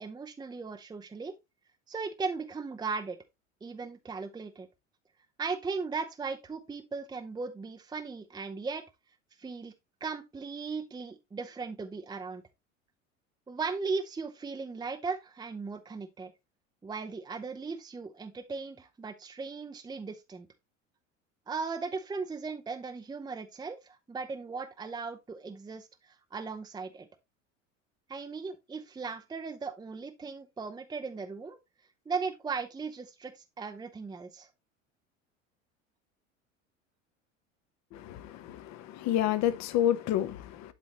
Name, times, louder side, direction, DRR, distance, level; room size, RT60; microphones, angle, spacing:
voice 1, 0.0-1.3 1.9-3.2 3.6-4.7 5.4-8.8 9.4-9.7 10.0-12.4 13.5-16.3 16.8-20.5 21.5-25.9 26.3-27.1 28.1-31.6 32.1-34.5, right 4 dB, 10° right, 0.7 m, -37 dB
voice 2, 37.9-40.7, left 11 dB, 45° left, 1.0 m, -29 dB
11.5 x 4.1 x 3.0 m
figure-of-eight pair, 75°, 39 cm